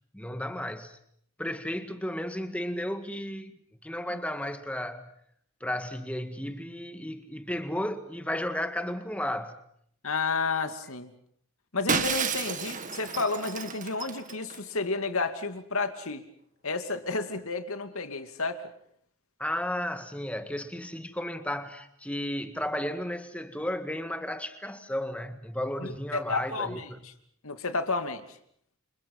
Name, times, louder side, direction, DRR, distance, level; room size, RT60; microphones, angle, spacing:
voice 1, 0.1-1.0 1.4-3.5 3.8-5.1 5.6-9.6 19.4-27.0, left 1 dB, 5° left, 1.9 m, -33 dB
voice 2, 10.0-11.1 11.7-16.3 16.6-18.6 25.8-27.1 27.4-28.4, left 3 dB, 75° left, 2.7 m, -31 dB
Shatter, 11.9-14.6, right 5 dB, 35° right, 1.8 m, -31 dB
30.0 x 27.5 x 5.6 m
head